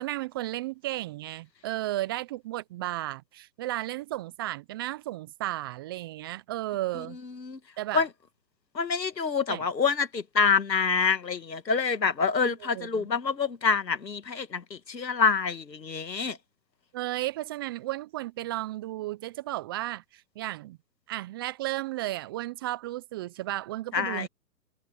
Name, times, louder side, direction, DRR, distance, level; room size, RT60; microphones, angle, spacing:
voice 1, 0.0-7.2 7.8-8.1 9.5-9.7 12.6-13.1 16.9-20.8 21.1-24.3, right 16 dB, 15° right, 0.6 m, -34 dB
voice 2, 8.7-16.4 23.9-24.3, left 5 dB, 80° left, 2.5 m, -26 dB
figure-of-eight pair, 135°, 50 cm